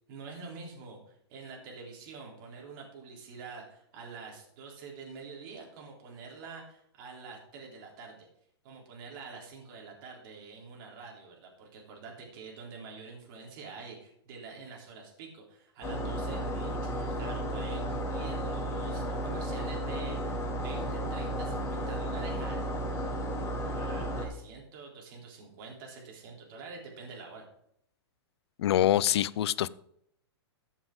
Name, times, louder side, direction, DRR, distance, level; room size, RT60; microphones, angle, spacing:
voice 1, 0.1-8.2 8.6-22.6 23.7-27.5, right 4 dB, 50° right, -1 dB, 3.8 m, -46 dB
sound 1, 15.8-24.3, right 1 dB, 20° left, 2.7 m, -33 dB
voice 2, 28.6-29.7, left 12 dB, 70° left, 20 dB, 0.5 m, -25 dB
14.5 x 7.2 x 3.9 m, 0.71 s
hypercardioid pair, 135°, 14 cm